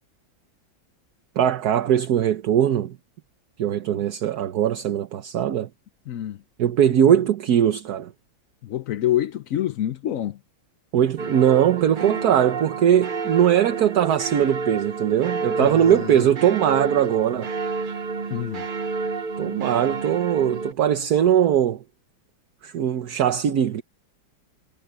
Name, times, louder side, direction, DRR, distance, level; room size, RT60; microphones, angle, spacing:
voice 1, 1.4-3.0 3.6-5.7 6.6-8.1 10.9-17.5 19.4-21.8 22.6-23.8, right 10 dB, 60° right, 1.3 m, -20 dB
voice 2, 6.1-6.4 8.6-10.4 15.6-16.3 18.3-18.7, left 12 dB, 65° left, 0.8 m, -27 dB
sound 1, 11.2-20.7, right 4 dB, 80° right, 0.4 m, -30 dB
omnidirectional pair, 2.1 m